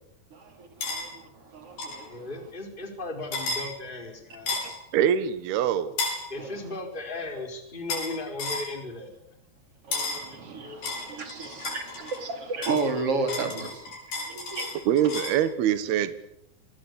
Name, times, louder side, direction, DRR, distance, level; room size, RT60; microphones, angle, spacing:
voice 1, 0.3-2.3 4.6-4.7 6.4-6.7 9.8-13.9 14.3-14.9, right 3 dB, 35° right, 5 dB, 4.8 m, -33 dB
sound 1, 0.8-1.0 1.8-2.0 3.3-3.7 4.5-4.8 6.0-6.2 7.9-8.1 8.4-8.7 9.9-10.3 10.8-12.2 12.6-15.4, left 3 dB, 75° left, 7.9 m, -32 dB
voice 2, 2.1-4.8 6.3-9.1, left 2 dB, 10° left, 4 dB, 4.9 m, -36 dB
voice 3, 4.9-6.0 14.3-14.4 14.9-16.2, right 9 dB, 75° right, 12 dB, 3.3 m, -24 dB
29.0 x 21.0 x 8.5 m, 0.76 s
omnidirectional pair, 4.6 m